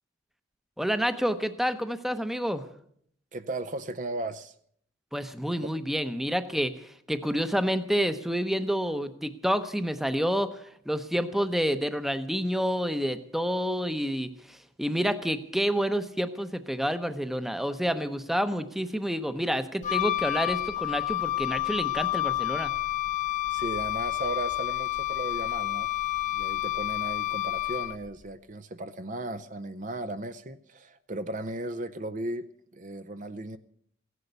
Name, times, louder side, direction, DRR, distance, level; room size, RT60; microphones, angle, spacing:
voice 1, 0.8-2.6 5.1-22.7, equal, ahead, 0.7 m, -29 dB
voice 2, 3.3-4.5 5.6-5.7 23.5-25.9 26.3-33.6, right 2 dB, 40° right, 0.5 m, -36 dB
Wind instrument woodwind instrument, 19.8-28.2, left 15 dB, 40° left, 0.6 m, -29 dB
16.5 x 11.0 x 8.0 m
head